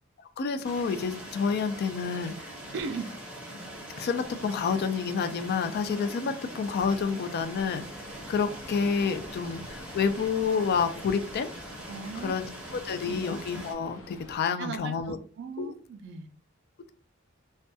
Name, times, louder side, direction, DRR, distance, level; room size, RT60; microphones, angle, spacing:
voice 1, 0.4-2.3 4.0-7.8 8.3-11.5 12.2-12.5 12.7-15.2 15.6-15.7, left 5 dB, 50° left, 0.3 m, -29 dB
sound 1, 0.6-13.7, equal, 5° right, 0.7 m, -42 dB
voice 2, 2.7-3.2 11.9-13.2 14.6-16.3, right 4 dB, 55° right, 0.3 m, -38 dB
sound 2, 6.8-14.4, equal, 85° left, 0.9 m, -48 dB
2.2 x 2.2 x 2.6 m
head